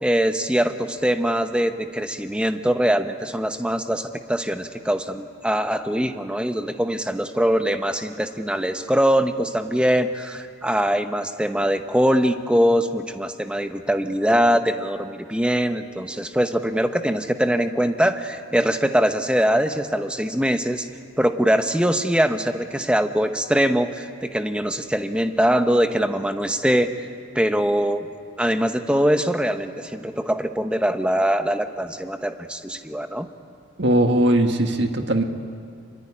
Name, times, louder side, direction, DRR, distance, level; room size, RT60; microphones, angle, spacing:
voice 1, 0.0-20.9 21.2-27.1 27.3-28.1 28.4-33.3, equal, 5° right, 7 dB, 1.0 m, -22 dB
voice 2, 33.8-35.2, right 1 dB, 55° right, 5 dB, 1.8 m, -19 dB
25.0 x 24.0 x 9.9 m, 2.3 s
head